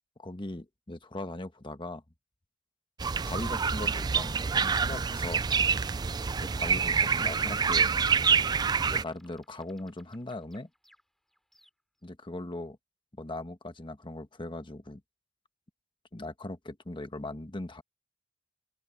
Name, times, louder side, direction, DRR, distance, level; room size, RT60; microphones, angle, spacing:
voice 1, 0.2-2.0 3.2-5.5 6.4-7.9 8.8-10.7 12.0-12.8 13.2-15.0 16.1-17.8, left 2 dB, 25° left, 1.3 m, -39 dB
sound 1, 3.0-9.0, right 6 dB, 20° right, 0.3 m, -27 dB
sound 2, 7.6-12.1, equal, ahead, 5.4 m, -64 dB
open air
head